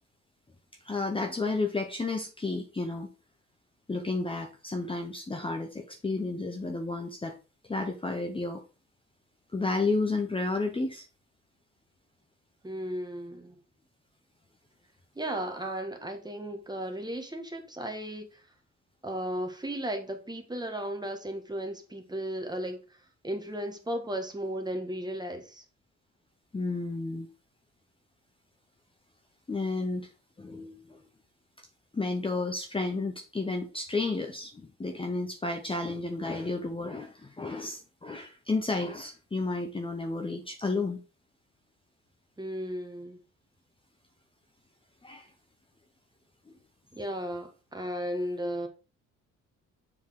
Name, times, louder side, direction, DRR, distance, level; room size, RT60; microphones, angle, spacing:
voice 1, 0.8-3.1 3.9-7.4 7.7-8.6 9.5-11.1 26.5-27.3 29.5-30.1 30.4-31.0 31.9-41.0 45.0-45.3, left 3 dB, 15° left, 0.9 m, -32 dB
voice 2, 12.6-13.6 15.1-18.4 19.0-22.8 23.2-25.6 42.4-43.2 46.9-48.7, equal, 15° right, 1.5 m, -35 dB
7.3 x 4.2 x 3.7 m
cardioid pair, 90°, 30 cm